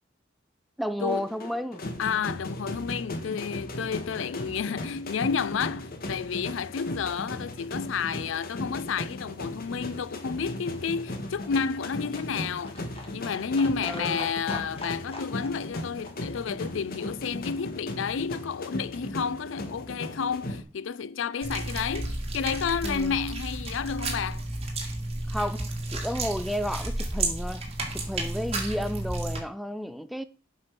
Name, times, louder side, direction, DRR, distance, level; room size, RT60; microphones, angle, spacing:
voice 1, 0.8-1.8 13.8-14.3 22.8-23.2 25.2-27.6 27.9-30.2, equal, ahead, 0.5 m, -32 dB
sound 1, 1.1-20.6, left 1 dB, 50° left, 1.4 m, -37 dB
voice 2, 2.0-12.8 13.1-24.4, left 6 dB, 75° left, 0.4 m, -31 dB
Livestock farm animals working animals, 10.2-17.9 18.2-18.3 18.5-18.6 18.8-18.9 19.1-19.2 19.4-19.5 19.8-19.9 20.1-20.2 20.4-20.5, left 2 dB, 30° left, 2.2 m, -45 dB
sound 2, 21.4-29.4, right 2 dB, 35° right, 2.1 m, -32 dB
8.1 x 5.6 x 6.0 m
head